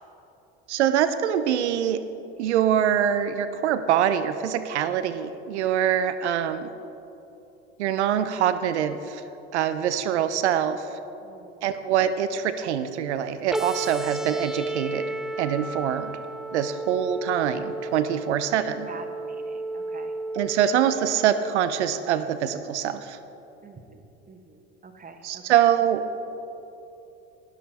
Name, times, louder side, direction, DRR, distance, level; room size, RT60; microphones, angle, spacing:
voice 1, 0.7-2.0 2.4-6.7 7.8-9.2 9.5-10.9 11.6-15.1 15.4-16.1 16.5-18.9 20.3-23.2 25.2-26.0, right 9 dB, 90° right, 11 dB, 0.7 m, -24 dB
voice 2, 11.2-11.6 18.9-20.1 23.6-24.0 24.3-25.6, right 5 dB, 25° right, 5 dB, 1.3 m, -46 dB
sound 1, 13.5-21.5, right 2 dB, ahead, 0.3 m, -33 dB
12.5 x 10.5 x 4.2 m, 3.0 s
hypercardioid pair, 80°, 33 cm